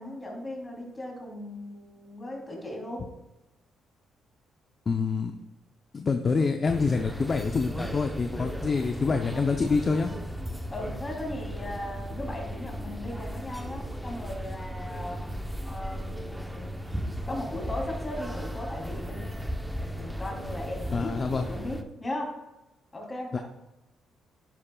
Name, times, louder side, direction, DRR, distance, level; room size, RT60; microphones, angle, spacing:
voice 1, 0.0-3.0 10.7-15.2 15.7-16.9 17.3-19.2 19.8-22.3 22.9-23.4, left 1 dB, 25° left, -1 dB, 3.2 m, -37 dB
voice 2, 4.9-5.3 5.9-10.1 20.9-21.5 23.3-23.4, left 4 dB, 40° left, 5 dB, 0.7 m, -26 dB
sound 1, 6.7-21.8, equal, 5° right, 0.9 m, -36 dB
10.5 x 10.0 x 2.4 m, 0.97 s
cardioid pair, 90°, 0 cm